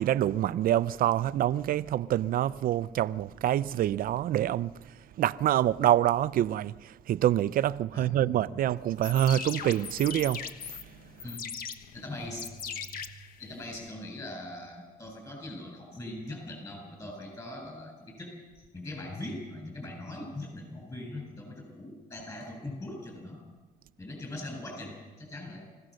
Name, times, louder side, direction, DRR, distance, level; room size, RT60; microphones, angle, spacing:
voice 1, 0.0-4.7 5.2-6.7 7.1-10.4, right 12 dB, 55° right, 0.6 m, -26 dB
voice 2, 7.9-8.5 9.6-9.7 11.2-11.5 11.9-12.5 13.4-23.4 24.0-25.7, left 1 dB, 20° left, 7.7 m, -41 dB
sound 1, 8.9-13.9, left 6 dB, 60° left, 1.3 m, -40 dB
25.5 x 16.0 x 6.5 m
cardioid pair, 110°, 17 cm